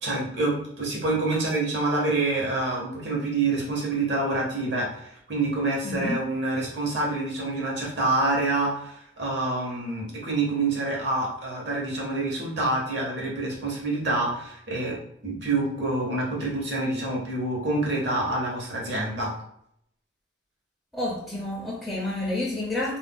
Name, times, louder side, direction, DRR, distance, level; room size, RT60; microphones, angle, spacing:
voice 1, 0.0-15.0 15.2-19.3, right 2 dB, 70° right, 1.0 m, -27 dB
voice 2, 5.8-6.2 20.9-23.0, left 2 dB, ahead, 0.5 m, -29 dB
2.5 x 2.1 x 3.4 m
head